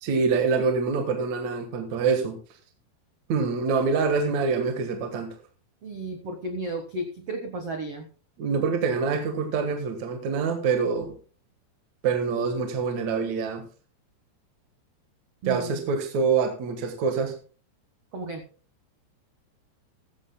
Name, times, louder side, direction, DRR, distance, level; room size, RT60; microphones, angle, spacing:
voice 1, 0.0-2.4 3.3-5.4 8.4-11.1 12.0-13.7 15.5-17.4, right 5 dB, 60° right, 2.1 m, -25 dB
voice 2, 5.8-8.1 15.4-15.9 18.1-18.4, right 2 dB, 75° right, 1.3 m, -33 dB
15.0 x 15.0 x 2.2 m
omnidirectional pair, 5.0 m